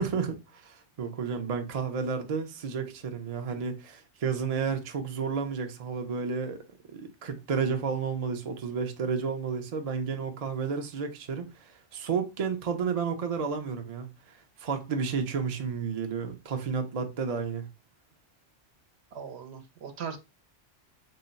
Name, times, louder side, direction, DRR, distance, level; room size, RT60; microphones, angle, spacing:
voice 1, 0.0-6.6 6.9-14.1 14.6-17.6, right 6 dB, 45° right, 0.5 m, -31 dB
voice 2, 19.1-20.2, right 6 dB, 65° right, 0.9 m, -39 dB
3.7 x 2.2 x 3.9 m
omnidirectional pair, 1.2 m